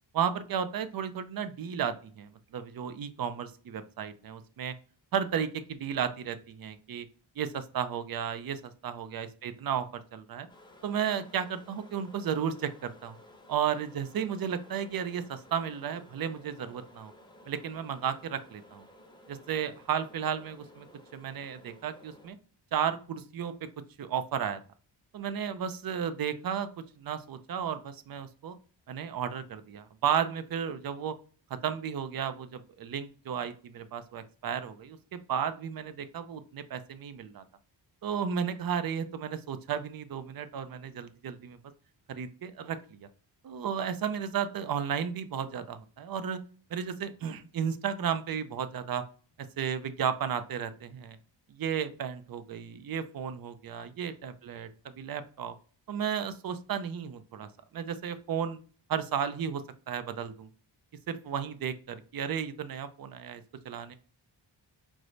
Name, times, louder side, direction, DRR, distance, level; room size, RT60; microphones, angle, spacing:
voice 1, 0.1-4.8 5.1-7.1 7.4-10.5 10.8-13.2 13.5-17.1 17.5-18.9 19.3-20.9 21.1-22.4 22.7-23.5 24.0-24.6 25.1-28.6 28.9-31.2 31.5-37.4 38.0-41.6 42.1-43.1 43.4-46.4 46.7-49.1 49.6-51.2 51.6-54.7 55.0-55.5 55.9-58.6 58.9-60.5 61.1-63.9, right 8 dB, 50° right, 11 dB, 0.5 m, -33 dB
sound 1, 10.5-22.3, left 1 dB, 10° left, 0.5 m, -55 dB
4.7 x 2.1 x 2.5 m, 0.39 s
wide cardioid pair, 100°, 46 cm